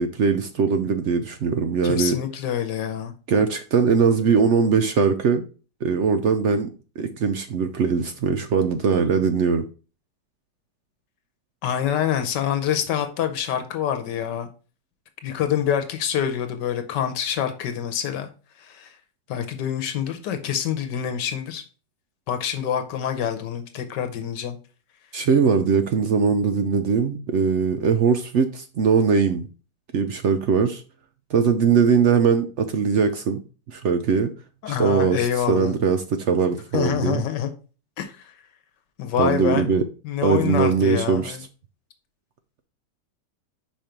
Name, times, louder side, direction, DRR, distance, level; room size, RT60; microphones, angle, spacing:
voice 1, 0.0-2.2 3.3-5.4 5.8-6.7 7.0-9.7 25.1-29.5 29.9-30.8 31.3-33.4 33.7-34.3 34.7-37.2 39.2-39.8 40.2-41.4, right 6 dB, 75° right, 0.6 m, -21 dB
voice 2, 1.8-3.1 11.6-14.5 15.2-18.3 18.6-18.9 19.3-21.6 22.3-24.6 34.6-35.7 36.7-37.5 38.0-38.3 39.0-39.7 40.0-41.4, left 9 dB, 80° left, 1.4 m, -26 dB
5.4 x 5.1 x 4.4 m
omnidirectional pair, 1.9 m